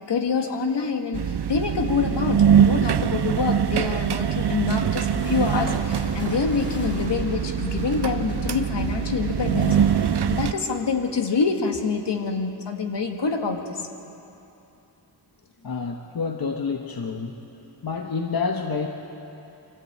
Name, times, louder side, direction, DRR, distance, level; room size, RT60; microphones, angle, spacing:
voice 1, 0.1-9.8 10.3-13.8, left 5 dB, 75° left, 4 dB, 1.8 m, -26 dB
sound 1, 1.1-10.5, right 8 dB, 65° right, 0.7 m, -23 dB
sound 2, 5.1-10.6, equal, 25° left, 6.1 m, -37 dB
voice 2, 15.6-17.4 17.8-18.9, left 5 dB, 55° left, 3 dB, 1.2 m, -28 dB
25.0 x 14.0 x 8.7 m, 2.9 s
wide cardioid pair, 90°, 43 cm